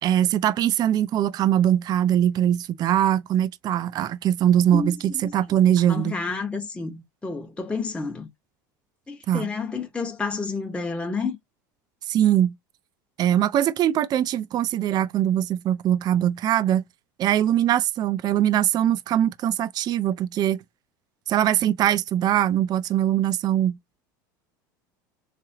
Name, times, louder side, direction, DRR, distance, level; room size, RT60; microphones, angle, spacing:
voice 1, 0.0-6.2 9.3-9.5 12.1-12.5 13.2-16.8 17.2-20.6 21.3-23.8, right 11 dB, 40° right, 0.4 m, -22 dB
voice 2, 4.7-8.3 9.1-11.4, left 4 dB, 10° left, 1.0 m, -30 dB
3.6 x 3.3 x 2.9 m
hypercardioid pair, 85°, 10 cm